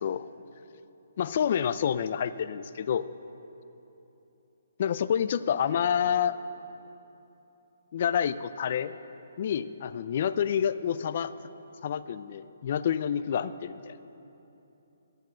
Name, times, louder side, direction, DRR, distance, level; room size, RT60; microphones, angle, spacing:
voice 1, 1.2-3.0 4.8-6.4 7.9-8.9 9.4-11.3 11.8-14.0, left 8 dB, 50° left, 14 dB, 0.4 m, -28 dB
11.5 x 7.7 x 6.2 m, 3.0 s
hypercardioid pair, 150°, 0 cm